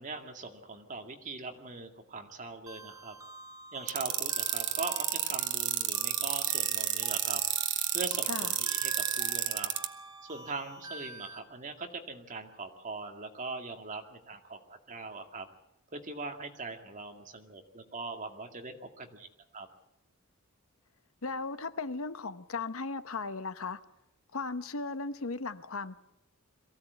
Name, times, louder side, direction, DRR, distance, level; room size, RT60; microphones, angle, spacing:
voice 1, 0.0-3.2 3.7-7.4 7.9-9.7 10.3-15.5 15.9-19.3 19.5-19.7, right 3 dB, 35° right, 5 dB, 2.2 m, -41 dB
sound 1, 2.7-11.4, right 2 dB, 15° right, 1.3 m, -46 dB
sound 2, 3.9-9.9, right 13 dB, 55° right, 1.3 m, -30 dB
voice 2, 21.2-23.8 24.3-26.0, left 4 dB, 65° left, 12 dB, 0.9 m, -36 dB
23.0 x 16.0 x 8.2 m, 0.86 s
head